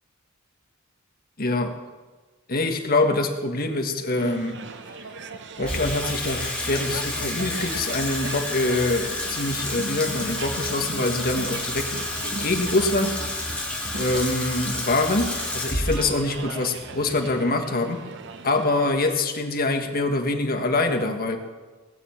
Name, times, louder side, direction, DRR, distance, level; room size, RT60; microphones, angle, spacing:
voice 1, 1.4-1.7 2.5-4.6 5.6-13.2 13.9-18.0 18.4-21.4, left 2 dB, 45° left, 4 dB, 1.5 m, -25 dB
sound 1, 4.2-19.2, right 4 dB, 60° right, 0.9 m, -39 dB
Water tap faucet / Sink (filling or washing), 5.6-18.0, left 1 dB, 5° left, 2.6 m, -30 dB
18.5 x 7.0 x 7.2 m, 1.3 s
head